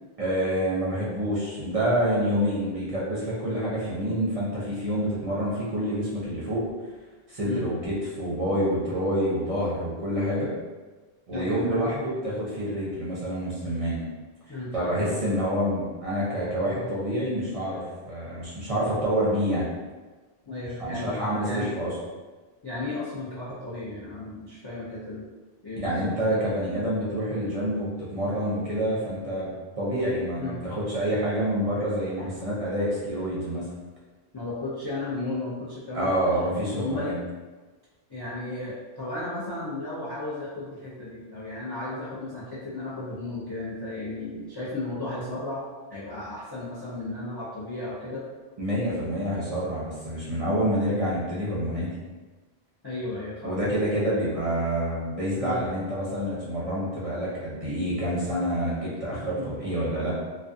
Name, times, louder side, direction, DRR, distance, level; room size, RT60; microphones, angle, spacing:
voice 1, 0.2-6.6 7.3-10.5 11.3-14.0 14.7-19.6 20.9-21.9 25.8-33.7 35.9-37.1 48.6-51.9 53.4-60.2, equal, 40° right, -7 dB, 0.6 m, -27 dB
voice 2, 11.3-11.8 14.5-15.3 16.7-16.9 20.5-21.7 22.6-25.3 25.6-26.4 30.4-30.6 34.3-36.2 36.8-37.2 38.1-48.2 52.8-53.6 55.4-55.6 59.3-59.5, left 2 dB, 35° left, -9 dB, 0.4 m, -34 dB
2.4 x 2.2 x 2.5 m, 1.3 s
omnidirectional pair, 1.1 m